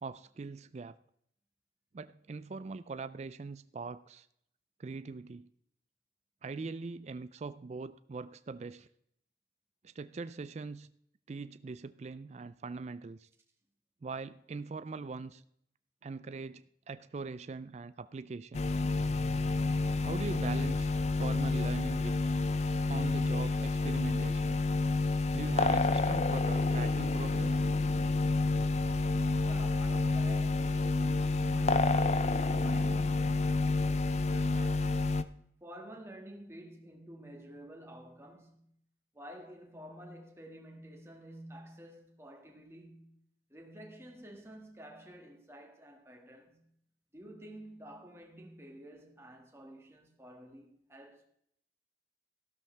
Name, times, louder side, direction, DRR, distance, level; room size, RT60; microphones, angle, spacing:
voice 1, 0.0-1.0 1.9-4.3 4.8-5.5 6.4-8.9 9.8-10.9 11.3-13.3 14.0-15.4 16.0-18.7 20.0-20.9 21.2-22.2 22.9-24.6 25.3-27.6, right 4 dB, 40° right, 0.4 m, -41 dB
sound 1, 18.5-35.2, left 3 dB, 40° left, 0.5 m, -29 dB
voice 2, 29.4-35.1 35.6-38.7 39.1-43.1 43.5-46.7 47.1-51.2, right 1 dB, 15° right, 1.9 m, -51 dB
13.5 x 12.5 x 3.4 m
head